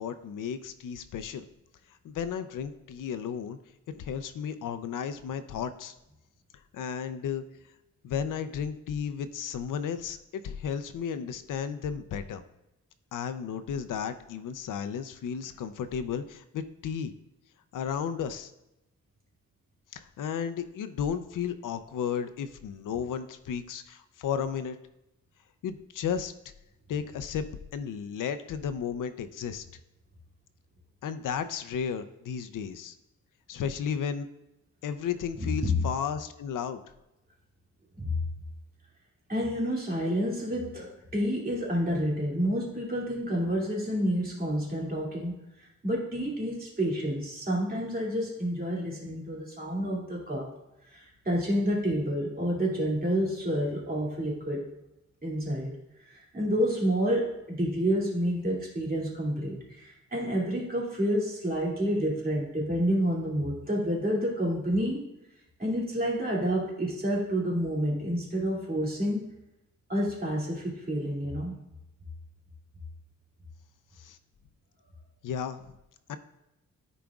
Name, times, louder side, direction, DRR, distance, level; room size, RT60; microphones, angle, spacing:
voice 1, 0.0-1.5 2.0-3.6 3.9-5.9 6.5-7.4 8.0-12.4 13.1-17.1 17.7-18.5 19.9-24.8 25.6-26.3 26.9-27.5 27.7-29.7 31.0-33.0 33.5-34.3 34.8-36.8 74.0-74.2 75.2-75.7 76.1-76.2, left 7 dB, 85° left, 10 dB, 0.6 m, -33 dB
voice 2, 35.4-35.8 38.0-38.2 39.3-45.5 45.8-50.5 50.9-54.7 55.2-55.8 56.0-65.1 65.6-69.2 69.9-71.6, equal, 30° right, -4 dB, 2.5 m, -29 dB
14.0 x 5.0 x 2.4 m, 0.90 s
wide cardioid pair, 120°, 31 cm